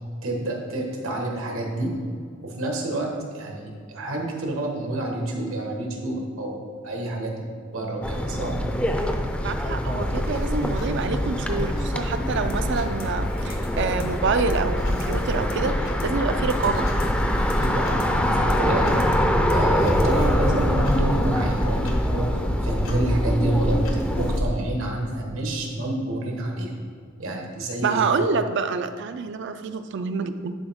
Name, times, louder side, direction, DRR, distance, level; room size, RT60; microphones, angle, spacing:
voice 1, 0.2-1.9 2.4-6.6 6.8-7.3 7.7-8.6 17.6-18.9 19.5-23.8 24.1-26.7 27.2-28.1, right 1 dB, 80° right, 0 dB, 1.3 m, -28 dB
sound 1, 8.0-24.4, equal, 5° left, 0.4 m, -25 dB
voice 2, 9.4-16.9 27.8-30.5, right 4 dB, 60° right, 10 dB, 0.4 m, -27 dB
Clock, 10.0-24.5, left 1 dB, 80° left, 1.2 m, -30 dB
sound 2, 12.2-20.2, left 1 dB, 50° left, 0.7 m, -40 dB
10.0 x 4.4 x 3.6 m, 2.1 s
head